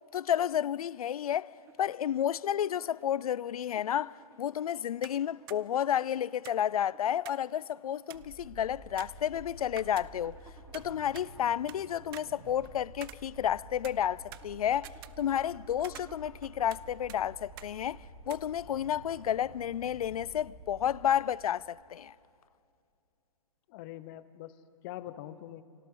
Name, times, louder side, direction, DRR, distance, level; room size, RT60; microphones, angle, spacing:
voice 1, 0.1-10.4 10.7-18.0 18.3-22.1, left 10 dB, 85° left, 0.4 m, -31 dB
sound 1, 1.5-18.4, right 5 dB, 15° right, 1.3 m, -60 dB
sound 2, 5.0-5.2 5.5-5.6 6.4-7.5 7.8-7.9 8.1-8.4 9.0-10.4 10.7-11.8 12.1-13.6 13.8-15.5 15.8-16.8 17.1-17.2 17.6-17.7 18.3-18.4, right 15 dB, 40° right, 0.5 m, -49 dB
sound 3, 8.1-21.0, right 1 dB, 80° right, 7.0 m, -51 dB
voice 2, 23.7-25.6, left 13 dB, 35° left, 0.8 m, -44 dB
29.5 x 24.5 x 3.8 m
hypercardioid pair, 140°, 18 cm